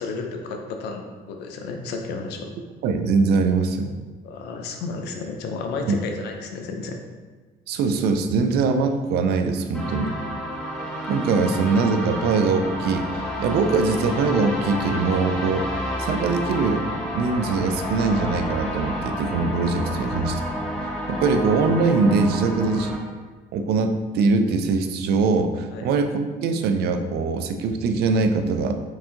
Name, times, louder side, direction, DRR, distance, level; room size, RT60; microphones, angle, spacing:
voice 1, 0.0-2.5 4.2-7.0 19.9-20.0 25.7-25.9, left 4 dB, 80° left, 3 dB, 0.6 m, -32 dB
voice 2, 2.8-4.0 5.9-6.0 7.7-10.1 11.1-15.7 16.0-16.8 17.1-20.4 21.1-23.0 23.5-28.8, right 4 dB, 75° right, 7 dB, 0.5 m, -22 dB
sound 1, 9.7-23.0, equal, 5° left, 1.1 m, -31 dB
sound 2, 11.8-22.8, left 3 dB, 35° left, 0.6 m, -37 dB
4.7 x 2.7 x 3.7 m, 1.4 s
cardioid pair, 110°, 17 cm